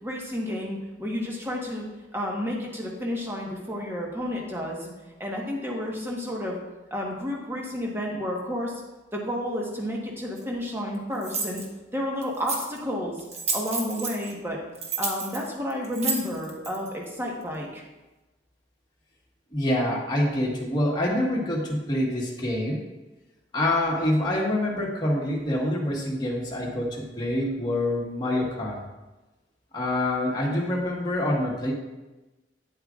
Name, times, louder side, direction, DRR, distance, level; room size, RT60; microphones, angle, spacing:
voice 1, 0.0-1.9 2.1-4.9 5.2-6.6 6.9-8.8 9.1-11.6 11.9-13.2 13.5-14.6 15.0-17.8, left 1 dB, 15° right, -2 dB, 1.3 m, -31 dB
sound 1, 10.4-10.5 11.2-11.7 12.2-12.8 13.2-14.3 14.8-16.9, right 4 dB, 35° right, 1.0 m, -30 dB
voice 2, 19.5-22.8 23.5-28.8 29.7-31.7, left 1 dB, 25° left, -3 dB, 1.5 m, -26 dB
9.5 x 7.8 x 2.5 m, 1.1 s
head